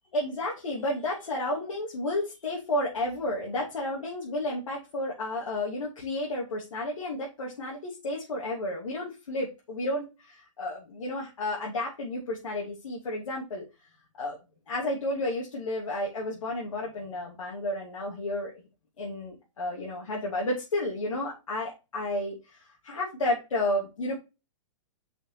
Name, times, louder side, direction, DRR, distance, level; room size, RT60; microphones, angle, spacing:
voice 1, 0.1-13.6 14.2-14.4 14.7-18.5 19.0-24.2, left 1 dB, 90° left, -4 dB, 2.7 m, -32 dB
5.8 x 5.8 x 4.1 m, 0.27 s
hypercardioid pair, 150°, 16 cm